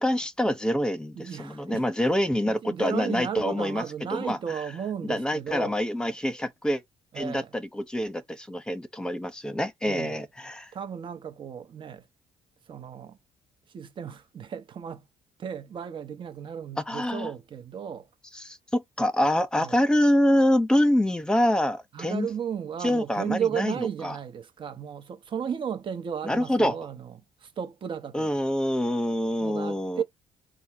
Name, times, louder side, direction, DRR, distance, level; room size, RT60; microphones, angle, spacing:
voice 1, 0.0-3.8 4.1-4.4 5.0-6.8 7.1-10.7 16.8-17.3 18.3-22.3 22.8-24.1 26.2-26.8 28.1-30.0, left 1 dB, 5° left, 0.9 m, -26 dB
voice 2, 1.2-1.9 2.4-5.8 7.1-7.6 9.8-10.2 10.7-12.1 12.7-13.2 13.7-15.1 15.4-18.1 19.5-19.8 21.9-28.4 29.4-30.0, right 8 dB, 50° right, 1.0 m, -34 dB
4.0 x 2.2 x 4.6 m
cardioid pair, 85°, 11 cm